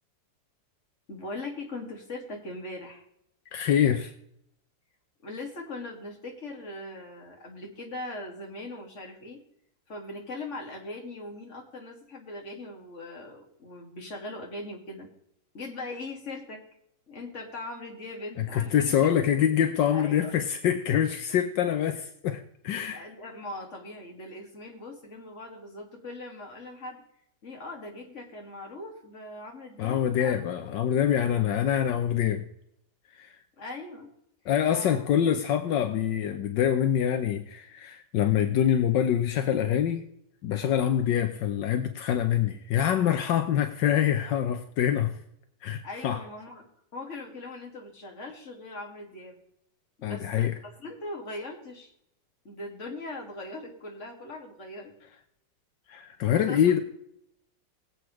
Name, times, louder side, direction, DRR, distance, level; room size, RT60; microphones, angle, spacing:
voice 1, 1.1-3.0 5.2-9.4 9.9-15.1 15.5-16.6 17.1-19.0 19.9-20.3 20.9-21.0 22.9-27.0 27.4-30.3 31.3-31.5 33.6-34.1 34.7-35.0 45.8-46.7 46.9-49.4 50.0-51.9 52.4-54.9 56.3-56.8, left 2 dB, 40° left, 1 dB, 2.6 m, -40 dB
voice 2, 3.5-4.1 18.5-23.0 29.8-32.4 33.2-33.3 34.5-40.1 40.4-45.1 45.6-46.2 50.0-50.5 55.9-56.8, left 9 dB, 80° left, 7 dB, 1.5 m, -25 dB
21.5 x 7.9 x 3.2 m, 0.75 s
omnidirectional pair, 2.0 m